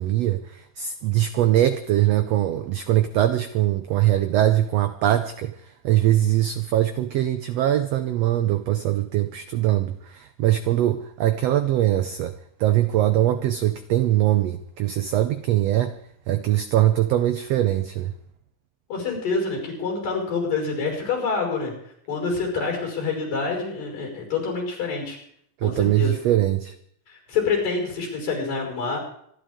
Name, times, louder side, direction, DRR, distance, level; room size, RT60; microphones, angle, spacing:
voice 1, 0.0-5.5 5.8-12.3 12.6-16.0 16.3-18.1 25.6-26.7, right 13 dB, 85° right, 10 dB, 1.4 m, -22 dB
voice 2, 18.9-21.7 22.1-25.2 25.6-26.1 27.1-29.0, left 4 dB, 85° left, 0 dB, 7.1 m, -27 dB
25.5 x 11.5 x 3.7 m, 0.68 s
omnidirectional pair, 3.8 m